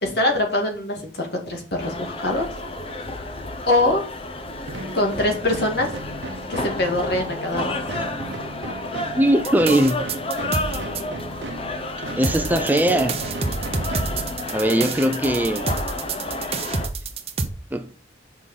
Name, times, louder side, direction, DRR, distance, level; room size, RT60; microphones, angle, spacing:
voice 1, 0.0-2.5 3.7-4.0 4.9-5.9 6.5-8.1 14.7-14.9, left 1 dB, 60° left, 2.2 m, -23 dB
sound 1, 1.8-16.9, left 2 dB, 30° left, 0.8 m, -31 dB
sound 2, 4.7-14.8, right 2 dB, 80° right, 0.9 m, -36 dB
voice 2, 9.1-10.0 12.2-13.2 14.5-15.7 17.7-17.9, right 1 dB, 10° right, 0.5 m, -20 dB
sound 3, 9.4-11.0 12.2-17.5, right 4 dB, 35° right, 0.9 m, -28 dB
6.1 x 5.3 x 6.6 m
head